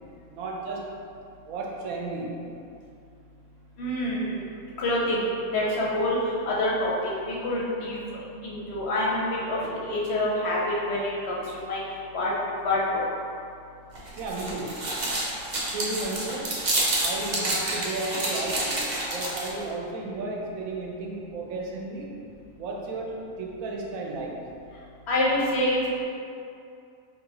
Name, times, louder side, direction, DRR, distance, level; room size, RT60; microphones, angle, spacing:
voice 1, 0.3-0.9 1.4-2.4 14.2-14.7 15.7-16.5 17.0-18.8 19.1-22.2 22.6-24.4, right 2 dB, 75° right, -1 dB, 1.0 m, -33 dB
voice 2, 3.8-4.4 4.8-5.3 5.5-6.2 6.5-6.9 7.3-9.2 9.5-11.4 11.7-11.8 12.1-12.3 12.6-13.0 25.1-26.0, left 1 dB, 60° left, -5 dB, 0.7 m, -26 dB
sound 1, 13.9-19.6, right 1 dB, 50° right, 0.5 m, -29 dB
4.5 x 2.5 x 2.9 m, 2.5 s
omnidirectional pair, 1.5 m